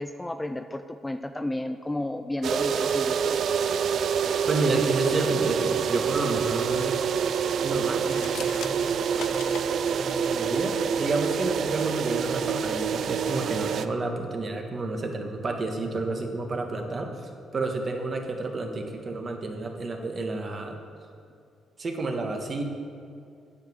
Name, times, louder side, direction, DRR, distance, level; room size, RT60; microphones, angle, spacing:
voice 1, 0.0-3.4, left 1 dB, 10° left, 8 dB, 0.4 m, -32 dB
sound 1, 2.4-13.9, right 7 dB, 65° right, 0.4 m, -27 dB
voice 2, 4.5-7.1 7.6-20.8 21.8-22.6, right 2 dB, 40° right, 3 dB, 1.3 m, -30 dB
sound 2, 8.1-9.7, left 9 dB, 80° left, 0.4 m, -40 dB
8.9 x 5.2 x 7.9 m, 2.4 s
cardioid pair, 90°, 0 cm